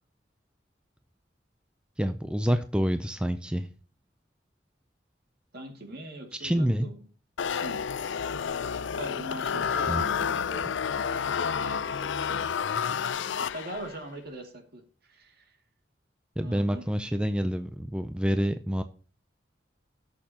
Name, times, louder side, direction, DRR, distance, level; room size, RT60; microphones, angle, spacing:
voice 1, 2.0-3.7 6.3-6.9 9.9-10.0 16.4-18.8, equal, 5° right, 9 dB, 0.4 m, -27 dB
voice 2, 5.5-6.9 7.5-7.9 8.8-15.6 16.4-16.8, right 1 dB, 55° right, 3 dB, 2.3 m, -43 dB
sound 1, 7.4-14.0, left 7 dB, 70° left, 0.4 m, -30 dB
17.5 x 6.6 x 2.8 m, 0.39 s
head